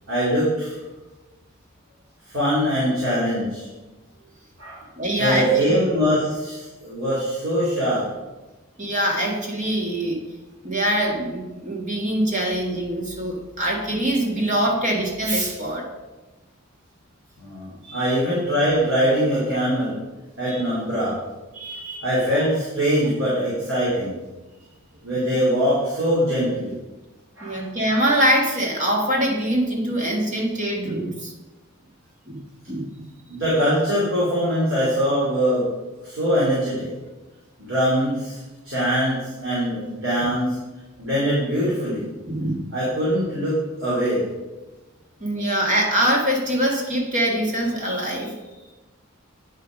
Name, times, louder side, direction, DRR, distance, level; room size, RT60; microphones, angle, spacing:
voice 1, 0.1-0.7 2.3-3.7 4.6-8.1 17.4-20.0 20.4-21.2 22.0-24.2 25.0-26.7 27.4-27.6 33.3-35.7 36.0-36.9 37.6-38.4 38.6-40.6 41.0-42.1 42.7-44.3, equal, 75° right, -8 dB, 2.8 m, -22 dB
voice 2, 5.0-5.7 8.8-10.2 10.6-15.8 17.8-18.2 20.5-20.6 21.5-22.0 27.4-31.3 32.3-32.4 32.7-33.0 40.2-40.3 42.3-42.6 45.2-48.3, right 1 dB, 35° right, 0 dB, 1.7 m, -23 dB
8.9 x 5.6 x 5.1 m, 1.1 s
head